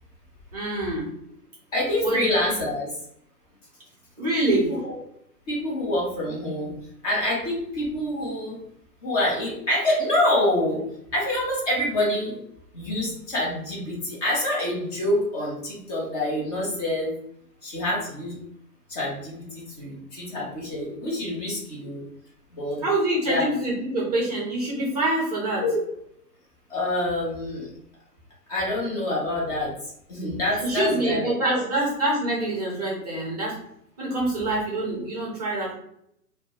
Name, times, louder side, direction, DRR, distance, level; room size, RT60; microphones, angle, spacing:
voice 1, 0.5-1.1 2.0-2.2 4.2-4.7 22.8-25.6 30.6-33.6 34.0-35.7, right 1 dB, 25° right, -5 dB, 0.5 m, -25 dB
voice 2, 1.7-3.0 4.5-5.0 5.5-6.7 7.0-8.6 9.0-10.8 11.1-12.4 12.7-17.1 17.6-18.4 18.9-22.0 22.5-22.8 23.2-23.5 25.6-25.8 26.7-27.7 28.5-31.6, left 1 dB, 25° left, -4 dB, 0.7 m, -26 dB
2.2 x 2.1 x 2.8 m, 0.74 s
figure-of-eight pair, 125°, 46 cm